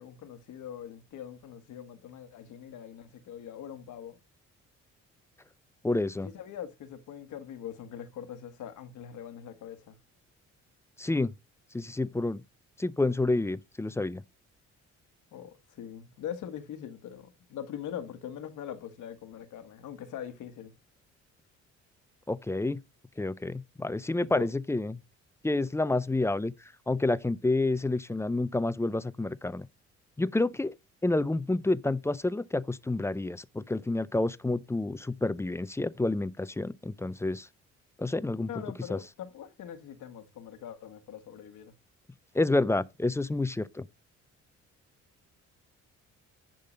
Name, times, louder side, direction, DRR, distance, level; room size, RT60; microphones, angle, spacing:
voice 1, 0.0-4.2 6.2-10.0 15.3-20.7 24.3-24.5 38.5-41.7, left 9 dB, 80° left, 1.5 m, -42 dB
voice 2, 5.8-6.3 11.0-11.3 11.7-12.4 12.8-14.2 22.3-22.8 23.2-25.0 25.4-26.5 26.9-29.7 30.2-30.7 31.0-37.5 38.0-38.5 38.9-39.0 42.3-43.8, left 2 dB, 10° left, 0.4 m, -29 dB
10.5 x 3.8 x 5.2 m
cardioid pair, 90°, 30 cm